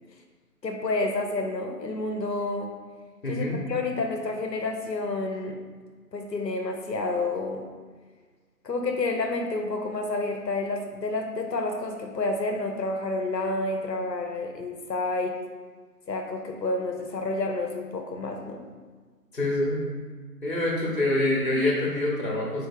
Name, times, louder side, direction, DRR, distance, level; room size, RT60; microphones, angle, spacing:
voice 1, 0.6-2.7 3.3-5.6 6.1-7.7 8.6-15.4 16.1-18.6, left 2 dB, 85° left, 4 dB, 0.8 m, -29 dB
voice 2, 3.2-3.5 19.3-19.8 20.4-22.7, left 1 dB, 55° left, -3 dB, 1.1 m, -25 dB
4.1 x 3.4 x 3.6 m, 1.5 s
figure-of-eight pair, 160°, 49 cm